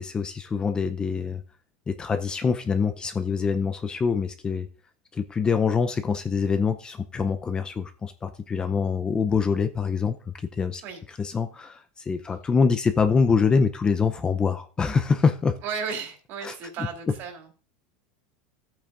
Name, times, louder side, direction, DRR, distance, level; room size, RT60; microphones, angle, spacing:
voice 1, 0.0-1.4 1.9-4.7 5.1-10.8 11.2-15.6 16.4-16.9, left 5 dB, 15° left, 8 dB, 0.6 m, -25 dB
voice 2, 15.6-17.5, right 6 dB, 45° right, 3 dB, 2.9 m, -34 dB
14.0 x 8.7 x 2.5 m, 0.37 s
supercardioid pair, 145°, 5 cm